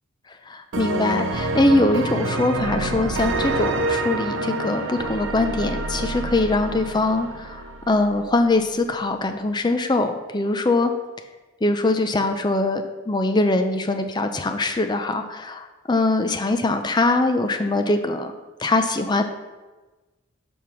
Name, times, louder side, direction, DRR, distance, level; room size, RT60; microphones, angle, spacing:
voice 1, 0.5-10.9 11.6-18.3 18.6-19.2, left 2 dB, 20° left, 7 dB, 0.5 m, -22 dB
sound 1, 0.7-8.4, right 2 dB, 75° right, 0.6 m, -27 dB
5.3 x 4.8 x 5.8 m, 1.2 s
head